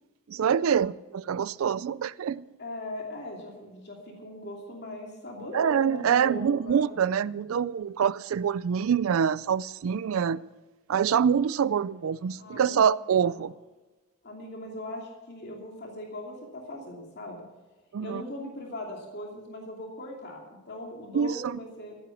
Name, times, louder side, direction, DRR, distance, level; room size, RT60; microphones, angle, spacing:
voice 1, 0.3-2.5 5.5-10.4 10.9-13.5 17.9-18.2 21.1-21.6, right 7 dB, 70° right, 0.4 m, -25 dB
voice 2, 2.6-6.9 12.4-12.9 13.2-13.4 14.2-17.4 18.0-22.0, left 1 dB, 55° left, 2.7 m, -39 dB
15.0 x 9.4 x 7.1 m
head